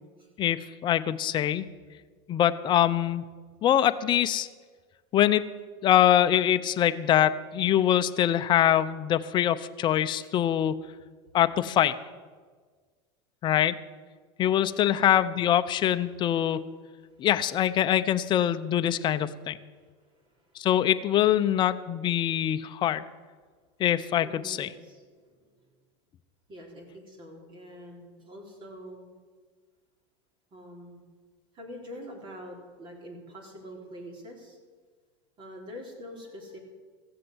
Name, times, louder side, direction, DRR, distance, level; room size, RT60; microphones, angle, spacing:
voice 1, 0.4-1.6 2.3-3.2 3.6-4.5 5.1-5.4 5.8-10.8 11.3-12.0 13.4-13.8 14.4-16.6 17.2-19.6 20.6-23.0 23.8-24.7, left 11 dB, 35° left, 11 dB, 0.6 m, -24 dB
voice 2, 14.7-15.0 17.0-17.3 19.8-20.7 21.3-21.4 24.2-25.7 26.5-29.1 30.5-31.0 31.5-34.6 35.4-36.6, equal, 35° right, 1 dB, 3.6 m, -45 dB
15.0 x 7.6 x 7.9 m, 1.5 s
supercardioid pair, 130°, 14 cm